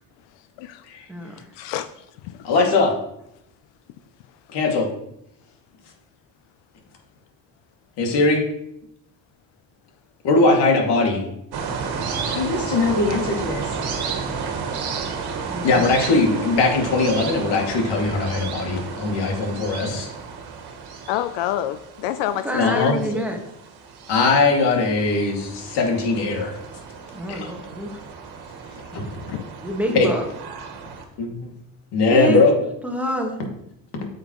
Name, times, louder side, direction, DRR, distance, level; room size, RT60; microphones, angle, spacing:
voice 1, 2.4-3.0 4.5-4.9 8.0-8.4 10.2-11.2 12.3-13.6 15.6-20.1 22.5-23.0 24.1-26.6 27.3-27.5 28.9-29.4 29.9-30.1 31.2-31.5 31.9-32.5, left 3 dB, 70° left, 1 dB, 2.4 m, -20 dB
sound 1, 11.5-31.0, right 5 dB, 65° right, 1.6 m, -32 dB
voice 2, 15.5-15.9 22.4-23.4 27.1-27.9 29.6-30.2 32.1-32.4 32.8-33.4, equal, 5° right, 1 dB, 1.4 m, -26 dB
voice 3, 21.1-22.5 22.7-23.3, left 12 dB, 90° left, 11 dB, 0.6 m, -27 dB
8.9 x 7.7 x 3.1 m, 0.79 s
cardioid pair, 110°, 42 cm